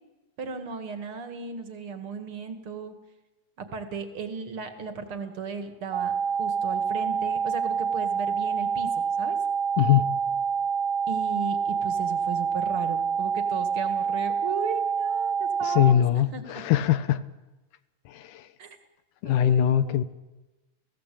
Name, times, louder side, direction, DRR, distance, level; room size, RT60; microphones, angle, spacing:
voice 1, 0.4-2.9 3.6-9.4 11.1-16.0 16.3-16.7 18.6-18.7 19.2-20.0, right 5 dB, 45° right, 8 dB, 2.7 m, -36 dB
sound 1, 5.9-15.9, right 6 dB, 65° right, 2.4 m, -27 dB
voice 2, 9.8-10.1 15.7-17.2 18.2-18.3 19.2-20.0, left 11 dB, 80° left, 14 dB, 2.5 m, -21 dB
29.5 x 17.0 x 8.6 m, 1.1 s
omnidirectional pair, 3.7 m